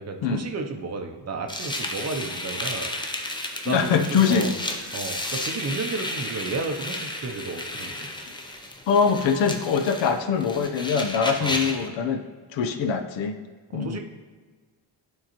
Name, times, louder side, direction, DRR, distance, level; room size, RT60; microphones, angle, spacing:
voice 1, 0.0-2.9 3.6-4.5 4.9-8.1 11.4-11.6 13.7-14.0, right 3 dB, 35° right, 4 dB, 0.6 m, -32 dB
sound 1, 1.5-11.9, left 1 dB, 10° left, 0.5 m, -33 dB
voice 2, 3.7-4.5 8.9-12.2 12.5-13.4 13.7-14.0, left 6 dB, 80° left, 7 dB, 0.7 m, -23 dB
11.5 x 3.8 x 2.9 m, 1.4 s
wide cardioid pair, 135°, 44 cm